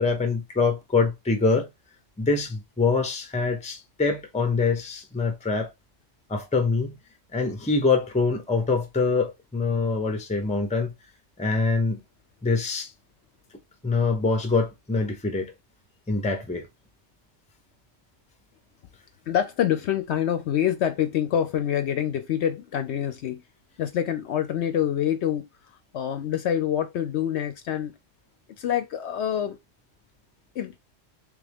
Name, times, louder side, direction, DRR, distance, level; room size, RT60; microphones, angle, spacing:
voice 1, 0.0-1.7 2.2-5.7 6.3-7.0 7.3-10.9 11.4-12.0 12.4-12.9 13.8-15.5 16.1-16.7, left 4 dB, 10° left, 0.6 m, -24 dB
voice 2, 19.3-23.4 23.8-25.5 25.9-27.9 28.5-29.6 30.6-30.8, left 10 dB, 65° left, 0.8 m, -26 dB
3.7 x 3.4 x 3.5 m
omnidirectional pair, 1.3 m